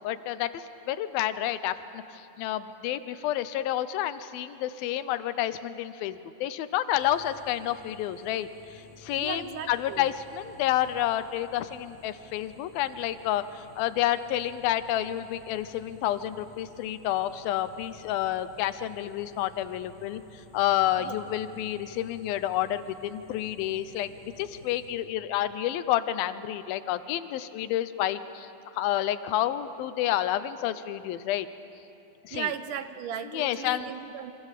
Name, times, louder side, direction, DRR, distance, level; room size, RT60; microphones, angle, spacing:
voice 1, 0.0-31.5 32.2-32.5 33.3-33.9, left 12 dB, 90° left, 12 dB, 2.7 m, -29 dB
sound 1, 7.0-24.9, right 2 dB, 10° left, 5.2 m, -54 dB
voice 2, 9.2-10.1 21.0-21.2 32.3-34.3, right 9 dB, 70° right, 9 dB, 2.3 m, -36 dB
27.5 x 25.0 x 7.4 m, 2.9 s
omnidirectional pair, 4.1 m